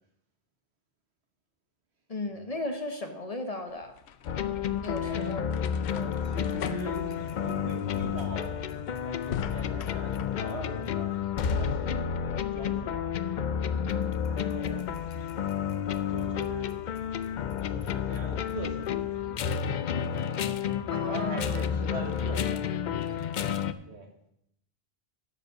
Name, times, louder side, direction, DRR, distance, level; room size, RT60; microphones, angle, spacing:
voice 1, 2.1-4.0 4.8-5.5 20.9-21.6, left 2 dB, 35° left, 7 dB, 1.0 m, -35 dB
sound 1, 3.7-10.4, left 7 dB, 80° left, 0.9 m, -42 dB
sound 2, 4.3-23.7, left 8 dB, 60° left, 0.5 m, -31 dB
voice 2, 5.0-11.2 11.5-13.8 14.3-14.9 15.2-15.4 16.1-16.7 17.7-19.6 20.9-22.7 23.1-23.2 23.9-24.1, right 3 dB, 80° right, 4 dB, 1.8 m, -42 dB
11.5 x 5.3 x 6.6 m, 0.74 s
omnidirectional pair, 1.1 m